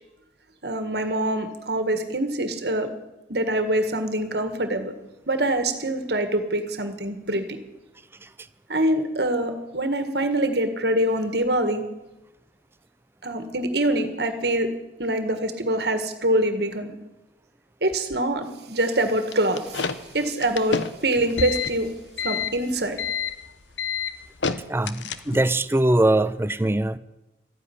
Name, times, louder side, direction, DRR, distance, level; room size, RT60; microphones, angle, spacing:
voice 1, 0.6-2.9 3.3-4.9 5.3-7.6 8.7-11.9 13.2-14.7 15.0-17.0 17.8-21.9 22.2-23.0, right 1 dB, 60° right, 8 dB, 1.8 m, -25 dB
sound 1, 19.3-25.6, left 6 dB, 75° left, 0.8 m, -29 dB
voice 2, 24.7-27.0, right 1 dB, 10° right, 15 dB, 0.4 m, -21 dB
13.5 x 9.9 x 9.9 m, 0.99 s
head